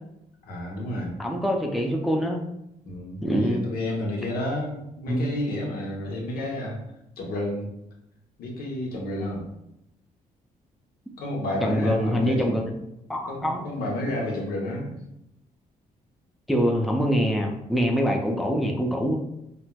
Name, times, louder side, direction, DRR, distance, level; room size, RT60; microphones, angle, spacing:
voice 1, 0.5-1.2 2.9-6.8 7.2-7.7 8.4-9.5 11.2-12.6 13.3-15.0, left 1 dB, 80° left, -2 dB, 0.9 m, -31 dB
voice 2, 1.2-2.4 3.2-3.6 5.1-5.3 11.6-12.7 13.1-13.6 16.5-19.2, equal, ahead, 0 dB, 0.4 m, -24 dB
4.1 x 2.1 x 2.2 m, 0.83 s
cardioid pair, 95°, 15 cm